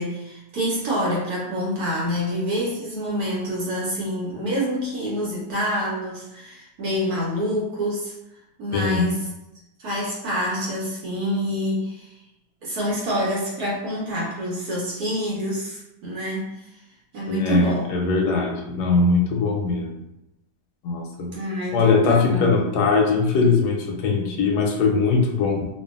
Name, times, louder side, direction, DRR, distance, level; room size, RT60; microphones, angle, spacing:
voice 1, 0.0-8.1 8.6-9.3 9.8-12.1 12.6-16.5 17.1-17.9 21.3-22.7, equal, 65° right, -5 dB, 1.1 m, -27 dB
voice 2, 8.7-9.1 17.3-19.9 20.8-21.3 21.7-25.7, left 4 dB, 75° left, 1 dB, 1.1 m, -21 dB
2.7 x 2.4 x 2.4 m, 0.91 s
omnidirectional pair, 1.9 m